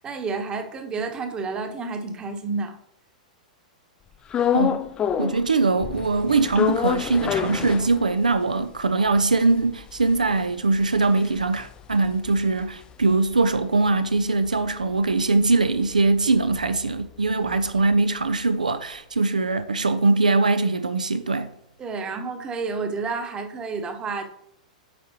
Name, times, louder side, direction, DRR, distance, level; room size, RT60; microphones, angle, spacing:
voice 1, 0.0-2.8 21.8-24.2, right 4 dB, 20° right, 1.0 m, -30 dB
sound 1, 4.3-5.5 5.8-8.4 8.8-8.9 9.1-13.6 13.9-18.0, left 9 dB, 20° left, 0.4 m, -29 dB
voice 2, 5.2-21.5, right 3 dB, 80° right, 0.4 m, -22 dB
9.2 x 4.6 x 2.9 m
figure-of-eight pair, 100°, 4 cm